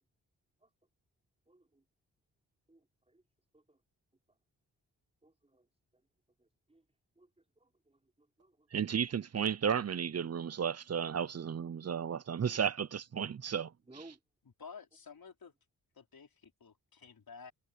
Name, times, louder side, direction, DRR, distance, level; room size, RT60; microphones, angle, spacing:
voice 1, 1.5-1.8 2.7-3.2 3.5-3.8 5.2-5.7 6.4-6.8 7.2-7.3 7.6-8.7 13.9-14.2, right 2 dB, 15° right, 4.5 m, -59 dB
voice 2, 8.7-13.7, right 7 dB, 40° right, 0.5 m, -33 dB
voice 3, 14.6-15.5 15.9-17.5, left 5 dB, 55° left, 5.0 m, -52 dB
wide cardioid pair, 175°, 42 cm